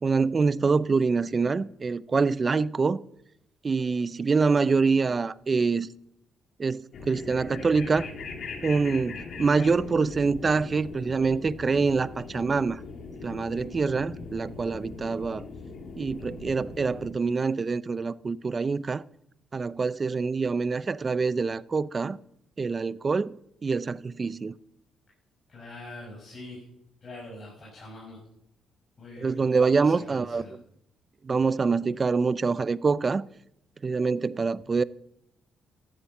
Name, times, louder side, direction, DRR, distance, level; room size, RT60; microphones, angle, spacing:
voice 1, 0.0-3.0 3.6-5.9 6.6-8.1 8.6-12.8 13.2-15.4 16.0-19.0 19.5-22.2 22.6-23.4 23.6-24.5 29.2-30.6 31.2-33.2 33.8-34.8, right 4 dB, 35° right, 0.5 m, -25 dB
sound 1, 6.9-17.1, left 4 dB, 60° left, 2.6 m, -40 dB
voice 2, 25.5-26.6 27.0-28.2 29.0-30.5, left 1 dB, 35° left, 6.5 m, -43 dB
14.0 x 11.0 x 7.1 m
cardioid pair, 90°, 0 cm